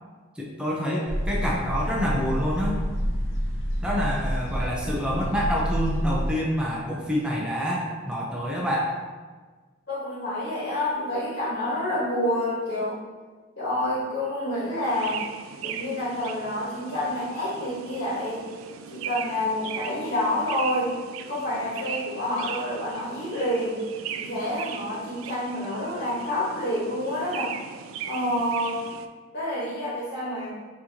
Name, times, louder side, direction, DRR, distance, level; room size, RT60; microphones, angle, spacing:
voice 1, 0.4-2.8 3.8-8.9, equal, 5° right, -5 dB, 0.6 m, -27 dB
sound 1, 1.1-6.3, equal, 80° left, 0.7 m, -28 dB
voice 2, 9.9-13.0 13.6-15.2 15.6-18.5 18.9-20.9 21.2-23.8 24.1-27.5 28.0-28.8 29.3-30.5, left 1 dB, 55° left, -8 dB, 1.4 m, -28 dB
sound 2, 14.7-29.1, right 8 dB, 90° right, 0.3 m, -39 dB
5.9 x 2.9 x 2.9 m, 1.4 s
head